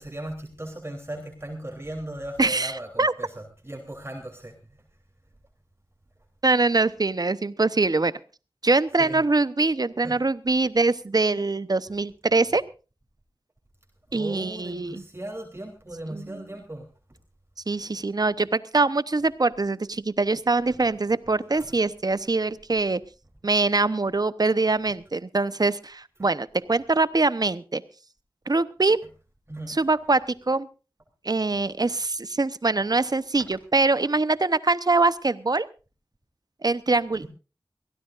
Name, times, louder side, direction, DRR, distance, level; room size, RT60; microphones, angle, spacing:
voice 1, 0.0-4.5 9.0-9.2 10.0-10.1 14.1-16.9 20.7-20.9 21.5-21.8 29.5-29.8 37.2-37.3, right 1 dB, 30° right, 0 dB, 3.3 m, -37 dB
voice 2, 2.4-2.7 3.0-3.1 6.4-8.1 8.6-12.6 14.1-15.0 16.1-16.4 17.7-23.0 23.4-27.8 28.5-29.0 29.7-30.7 31.2-35.7 36.6-37.2, right 3 dB, 50° right, 15 dB, 0.8 m, -23 dB
23.0 x 16.5 x 2.5 m, 0.33 s
wide cardioid pair, 65°, 9 cm